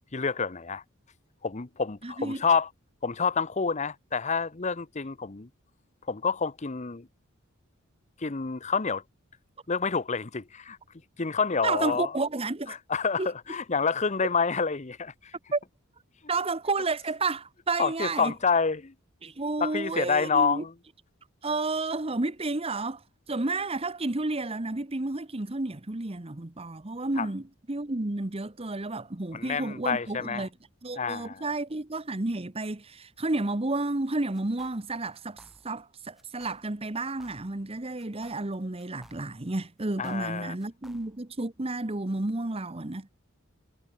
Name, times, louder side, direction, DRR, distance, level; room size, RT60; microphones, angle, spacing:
voice 1, 0.1-0.8 1.4-2.7 3.0-5.5 6.1-7.1 8.2-9.0 9.7-10.8 11.2-12.1 12.7-15.1 17.8-18.9 19.6-20.7 27.2-27.3 29.3-30.5 31.0-31.4 40.0-40.5, left 5 dB, 35° left, 0.8 m, -28 dB
voice 2, 2.0-2.4 11.6-12.8 13.2-13.3 15.5-15.6 16.3-18.3 19.2-20.6 21.4-23.0 23.3-30.5 30.8-43.1, right 2 dB, 30° right, 1.1 m, -31 dB
sound 1, 34.3-34.9 35.1-35.9 36.2-36.7 36.9-37.7 38.0-39.5 39.8-41.3, equal, ahead, 7.7 m, -58 dB
head